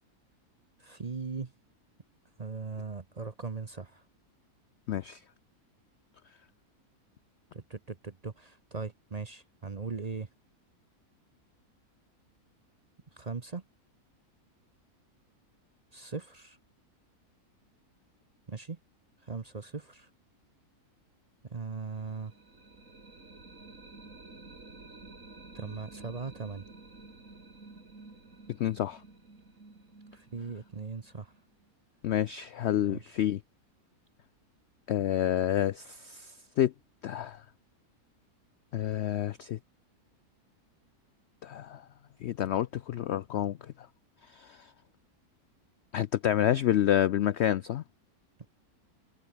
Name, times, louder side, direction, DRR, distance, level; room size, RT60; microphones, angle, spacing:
voice 1, 0.8-1.5 2.4-4.0 7.5-10.3 13.1-13.6 15.9-16.6 18.5-18.8 19.2-20.1 21.4-22.3 25.5-26.6 30.1-31.3 32.8-33.3 48.4-48.5, right 4 dB, 30° right, 0.8 m, -39 dB
voice 2, 4.9-5.2 28.6-29.0 32.0-33.4 34.9-36.7 37.0-37.4 38.7-39.6 41.4-41.8 42.2-43.6 44.3-44.7 45.9-47.8, left 11 dB, 70° left, 0.6 m, -28 dB
sound 1, 22.0-31.7, right 3 dB, 55° right, 4.1 m, -51 dB
omnidirectional pair, 1.6 m